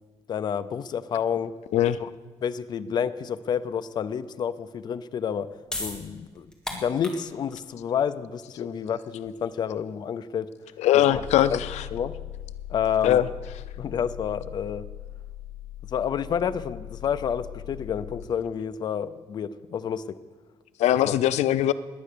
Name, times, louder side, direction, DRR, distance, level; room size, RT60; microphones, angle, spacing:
voice 1, 0.3-1.5 2.0-2.1 2.4-5.5 5.8-10.5 11.1-11.2 11.5-11.6 11.9-12.2 12.7-13.2 13.8-14.9 15.9-20.2 21.0-21.1, left 8 dB, 40° left, 12 dB, 0.6 m, -29 dB
sound 1, 5.7-12.0, left 1 dB, 5° left, 1.9 m, -40 dB
voice 2, 10.8-11.8 13.0-13.3 20.8-21.7, left 12 dB, 85° left, 15 dB, 0.5 m, -21 dB
sound 2, 11.1-18.2, left 12 dB, 65° left, 4.0 m, -40 dB
20.0 x 9.3 x 6.7 m, 1.3 s
cardioid pair, 180°, 11 cm